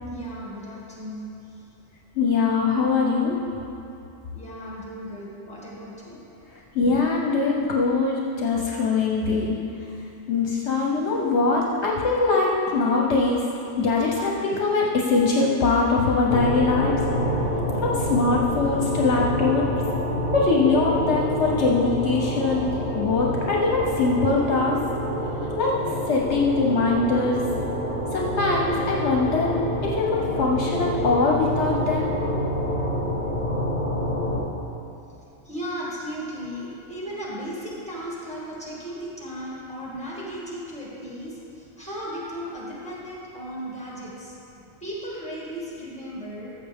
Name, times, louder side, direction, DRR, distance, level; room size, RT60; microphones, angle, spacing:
voice 1, 0.1-1.6 4.3-6.2 35.4-44.3 44.8-46.5, equal, 5° left, -6 dB, 2.1 m, -36 dB
voice 2, 2.2-3.4 6.7-9.5 10.3-13.4 13.8-16.9 17.8-19.6 20.3-24.8 25.6-25.7 26.1-27.4 28.1-29.5 29.8-30.1 30.4-32.1, left 3 dB, 65° left, -2 dB, 1.1 m, -22 dB
sound 1, 16.3-34.4, equal, 45° left, 1.5 m, -27 dB
14.0 x 7.3 x 3.6 m, 2.8 s
omnidirectional pair, 1.3 m